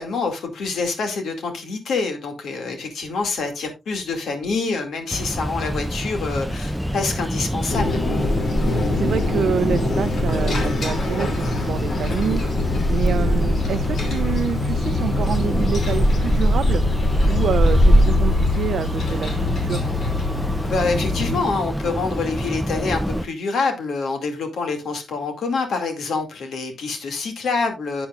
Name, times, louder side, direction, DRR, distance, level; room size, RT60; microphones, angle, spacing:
voice 1, 0.0-8.0 12.9-13.2 20.6-28.1, left 4 dB, 90° left, 2.3 m, -26 dB
sound 1, 5.1-23.2, equal, ahead, 0.5 m, -23 dB
sound 2, 7.7-21.4, left 4 dB, 65° left, 2.7 m, -26 dB
voice 2, 8.6-16.8 17.3-19.9, right 8 dB, 80° right, 0.5 m, -27 dB
10.5 x 8.6 x 2.4 m
wide cardioid pair, 165°, 0 cm